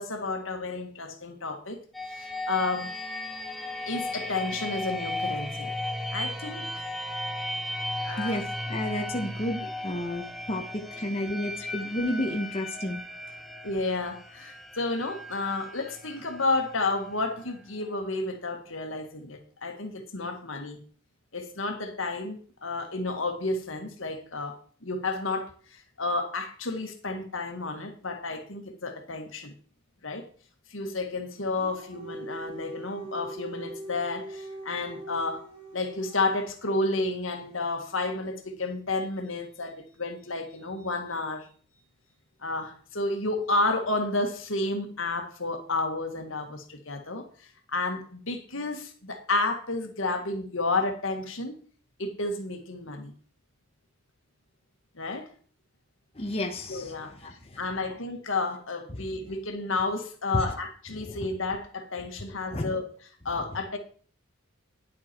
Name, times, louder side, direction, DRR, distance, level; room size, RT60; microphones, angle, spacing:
voice 1, 0.0-1.8 2.1-3.0 3.9-5.7 6.1-6.8 8.0-8.4 13.6-20.8 21.3-29.5 30.0-30.3 30.7-35.4 35.7-41.5 42.4-51.5 52.0-53.1 55.0-55.3 56.7-57.1 57.6-62.9 63.3-63.8, left 2 dB, 70° left, 1.9 m, -31 dB
sound 1, 1.9-17.6, left 1 dB, ahead, 1.1 m, -36 dB
voice 2, 8.2-13.0 56.1-57.6 58.9-59.0 60.3-60.6 60.9-61.3 62.5-62.7, left 1 dB, 30° left, 1.2 m, -32 dB
Dog, 31.4-36.5, right 2 dB, 30° right, 4.4 m, -42 dB
10.5 x 8.5 x 4.5 m
head